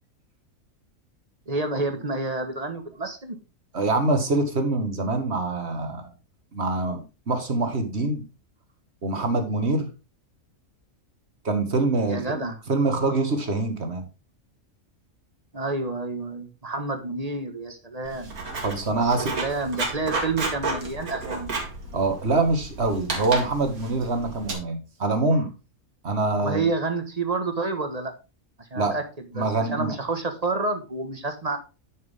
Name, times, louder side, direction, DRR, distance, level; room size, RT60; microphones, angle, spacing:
voice 1, 1.5-3.4 12.1-12.6 15.5-18.3 19.0-21.5 26.3-28.1 28.6-29.0 29.3-31.6, right 3 dB, 30° right, 6 dB, 1.5 m, -29 dB
voice 2, 3.7-6.1 6.5-8.2 9.0-9.9 11.4-12.4 12.7-14.0 18.5-19.4 21.9-25.5 26.0-26.7 28.8-29.0 29.3-30.0, right 3 dB, 50° right, 6 dB, 2.0 m, -25 dB
Writing, 18.0-24.5, right 3 dB, 90° right, 2.5 m, -32 dB
10.0 x 6.6 x 3.6 m, 0.30 s
omnidirectional pair, 1.5 m